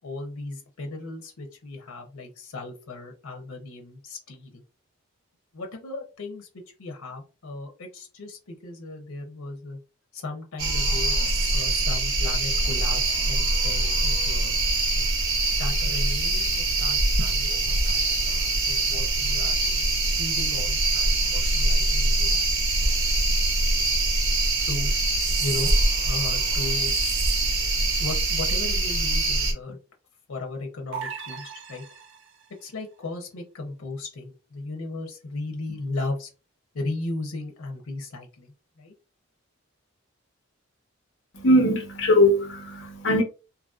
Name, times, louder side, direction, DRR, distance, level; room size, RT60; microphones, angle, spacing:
voice 1, 0.0-4.6 5.5-6.5 6.8-9.8 10.1-11.1 11.5-14.6 14.9-15.1 15.6-19.6 20.2-22.4 24.7-24.9 25.2-25.7 26.1-26.9 28.0-29.8 30.3-31.8 32.6-36.3 36.7-38.9, left 2 dB, 90° left, 0.7 m, -36 dB
sound 1, 10.6-29.5, right 2 dB, 80° right, 0.9 m, -23 dB
sound 2, 30.9-32.6, right 6 dB, 60° right, 0.5 m, -38 dB
voice 2, 41.3-43.2, left 1 dB, 55° left, 0.8 m, -20 dB
2.8 x 2.5 x 2.4 m
head